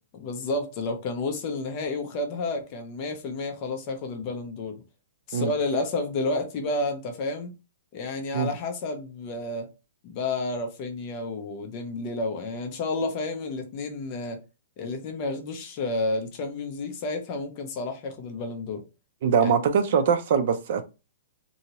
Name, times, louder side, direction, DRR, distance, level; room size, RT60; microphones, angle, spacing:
voice 1, 0.1-4.8 5.3-7.5 7.9-9.7 10.0-14.4 14.8-18.9 19.4-19.5, left 2 dB, 30° left, 0.6 m, -31 dB
voice 2, 19.2-20.8, right 6 dB, 50° right, 0.5 m, -22 dB
2.7 x 2.7 x 2.9 m
hypercardioid pair, 170°, 0 cm